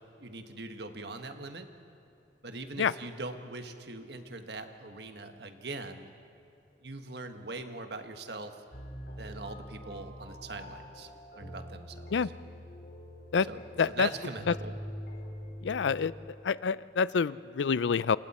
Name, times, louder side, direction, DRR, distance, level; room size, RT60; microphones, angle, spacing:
voice 1, 0.2-1.7 2.4-6.1 6.8-8.5 9.2-11.1 11.3-12.3 13.5-13.6 13.9-14.8, right 3 dB, 70° right, 7 dB, 1.4 m, -41 dB
sound 1, 8.7-16.3, equal, 60° left, 3.1 m, -44 dB
voice 2, 13.8-14.1 14.5-14.6 15.6-16.1 16.4-18.2, left 5 dB, 90° left, 18 dB, 0.4 m, -27 dB
28.0 x 28.0 x 4.3 m, 2.7 s
head